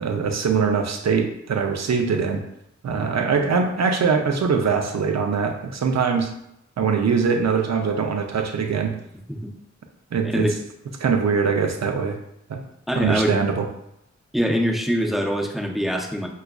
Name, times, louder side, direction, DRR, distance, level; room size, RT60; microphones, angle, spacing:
voice 1, 0.0-2.4 2.8-6.3 6.8-8.9 10.1-10.5 11.0-12.2 12.5-12.6 13.0-13.7, right 5 dB, 65° right, 4 dB, 0.6 m, -22 dB
voice 2, 12.9-13.4 14.3-16.3, equal, ahead, 1 dB, 0.6 m, -23 dB
4.7 x 2.4 x 2.3 m, 0.79 s
cardioid pair, 40°, 29 cm